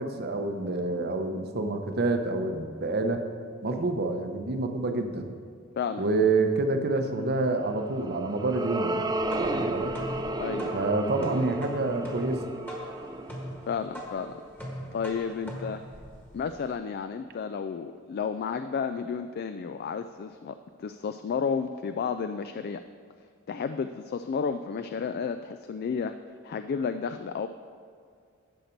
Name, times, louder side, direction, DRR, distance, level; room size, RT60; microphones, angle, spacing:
voice 1, 0.0-3.2 3.6-5.3 6.0-9.9 10.7-12.4, right 3 dB, 50° right, 6 dB, 0.8 m, -28 dB
sound 1, 7.8-14.4, right 1 dB, 20° right, 0.5 m, -33 dB
sound 2, 9.0-16.7, equal, 10° left, 1.3 m, -41 dB
voice 2, 10.4-10.7 13.7-14.4 14.9-15.8 16.3-22.8 23.5-26.2 26.4-27.5, left 6 dB, 45° left, 9 dB, 0.3 m, -32 dB
10.5 x 6.6 x 4.5 m, 2.2 s
head